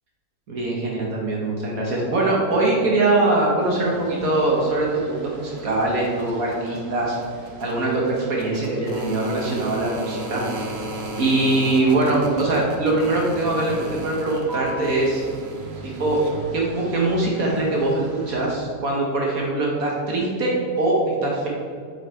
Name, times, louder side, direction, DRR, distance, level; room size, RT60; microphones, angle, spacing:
voice 1, 0.5-7.2 7.6-10.4 11.2-15.2 15.8-16.2 16.5-21.5, right 2 dB, 60° right, -2 dB, 1.7 m, -22 dB
sound 1, 3.6-18.4, right 1 dB, 45° right, 1.2 m, -36 dB
7.8 x 5.9 x 4.5 m, 2.2 s
omnidirectional pair, 1.7 m